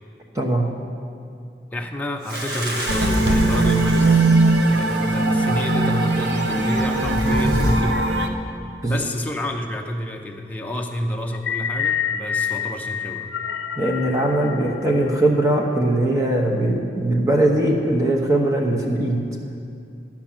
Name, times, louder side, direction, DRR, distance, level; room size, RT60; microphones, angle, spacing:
voice 1, 0.3-0.7 8.8-9.0 13.8-19.2, right 1 dB, 15° right, -1 dB, 0.9 m, -20 dB
voice 2, 1.7-4.3 4.7-8.1 8.9-13.4, left 1 dB, 10° left, 1 dB, 0.7 m, -29 dB
sound 1, 2.2-7.8, equal, 65° right, 1.6 m, -29 dB
sound 2, 2.9-8.3, right 2 dB, 85° right, 0.9 m, -19 dB
sound 3, 11.3-15.6, left 8 dB, 85° left, 0.5 m, -28 dB
11.5 x 5.9 x 8.8 m, 2.4 s
head